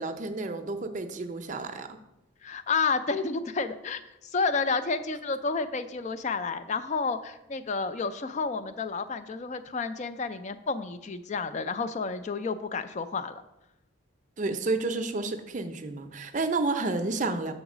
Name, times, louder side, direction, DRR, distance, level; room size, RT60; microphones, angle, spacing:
voice 1, 0.0-1.9 14.4-17.5, right 3 dB, 35° right, 7 dB, 0.5 m, -30 dB
voice 2, 2.4-13.4, left 4 dB, 35° left, 12 dB, 0.3 m, -30 dB
6.3 x 3.9 x 6.0 m, 0.92 s
head